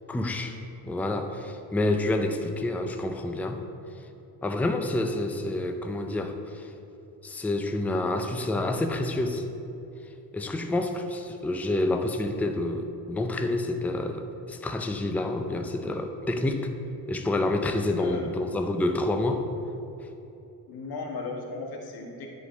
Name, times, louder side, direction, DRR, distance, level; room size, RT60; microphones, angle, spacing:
voice 1, 0.1-0.6 0.8-3.6 4.4-6.7 7.2-9.4 10.3-16.7 17.1-19.4, left 2 dB, 5° left, 5 dB, 0.4 m, -28 dB
voice 2, 18.0-18.3 20.7-22.3, left 3 dB, 85° left, 1 dB, 1.3 m, -36 dB
9.8 x 4.1 x 5.1 m, 2.9 s
cardioid pair, 125°, 36 cm